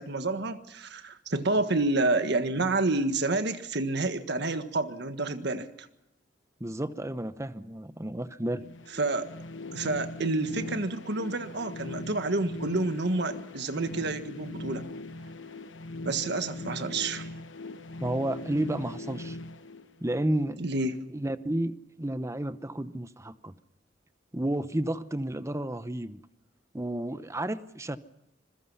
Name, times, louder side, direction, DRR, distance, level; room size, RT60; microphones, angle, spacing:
voice 1, 0.0-5.9 9.0-9.3 9.7-14.9 16.0-17.3 20.6-20.9, right 2 dB, 60° right, 9 dB, 1.6 m, -29 dB
voice 2, 6.6-8.6 18.0-19.4 20.0-20.6 21.1-23.5 24.3-26.2 26.7-28.0, right 1 dB, 15° right, 13 dB, 0.8 m, -31 dB
sound 1, 8.5-20.4, left 2 dB, 75° left, 1.1 m, -40 dB
26.5 x 22.0 x 5.6 m, 0.86 s
head